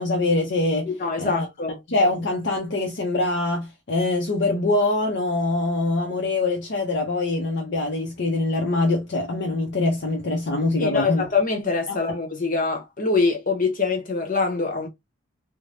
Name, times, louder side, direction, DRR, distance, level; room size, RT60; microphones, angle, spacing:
voice 1, 0.0-0.9 1.2-1.5 1.9-11.2 11.9-12.0, left 2 dB, 60° left, 0.6 m, -24 dB
voice 2, 0.8-1.8 10.8-14.9, left 4 dB, 45° left, 1.0 m, -24 dB
3.3 x 2.1 x 2.5 m
head